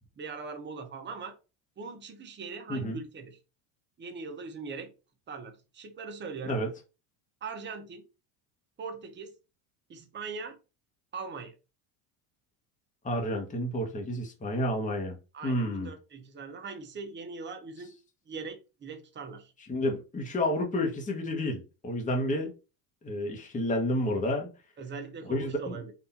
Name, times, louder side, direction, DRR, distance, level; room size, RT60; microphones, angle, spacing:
voice 1, 0.2-1.4 1.8-3.4 4.0-4.9 5.3-6.6 7.4-8.0 8.8-9.3 9.9-10.6 11.1-11.5 15.3-18.0 18.3-19.5 24.8-25.9, right 4 dB, 20° right, 0.9 m, -40 dB
voice 2, 13.0-15.2 15.4-15.9 19.7-22.5 23.0-24.5 25.3-25.8, left 1 dB, 15° left, 1.1 m, -30 dB
4.2 x 2.7 x 4.2 m
supercardioid pair, 115°, 49 cm